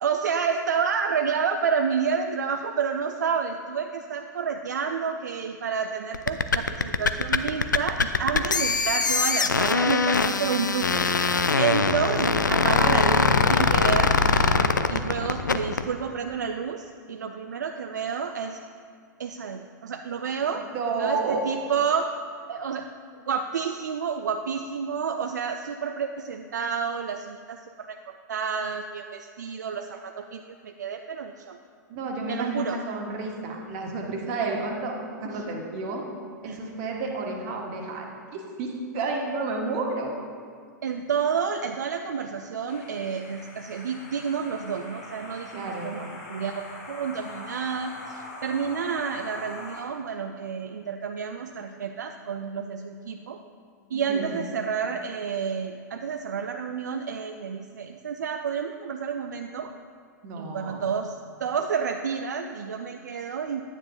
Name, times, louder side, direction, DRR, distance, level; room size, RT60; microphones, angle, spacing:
voice 1, 0.0-11.0 11.6-14.1 14.9-18.6 19.2-20.7 21.0-22.2 22.5-22.9 23.3-31.6 32.3-32.8 36.4-36.6 40.8-46.6 46.9-53.4 53.9-59.7 60.4-63.6, right 6 dB, 70° right, 5 dB, 0.4 m, -29 dB
sound 1, 6.1-15.9, left 4 dB, 80° left, 0.4 m, -22 dB
voice 2, 20.7-21.4 31.9-36.0 36.4-38.1 38.3-40.1 45.5-46.0 53.9-54.5 60.2-60.8, right 3 dB, 40° right, 0 dB, 1.3 m, -31 dB
sound 2, 42.7-49.8, left 2 dB, 55° left, 2.2 m, -42 dB
9.5 x 9.0 x 2.7 m, 2.2 s
figure-of-eight pair, 100°, 10 cm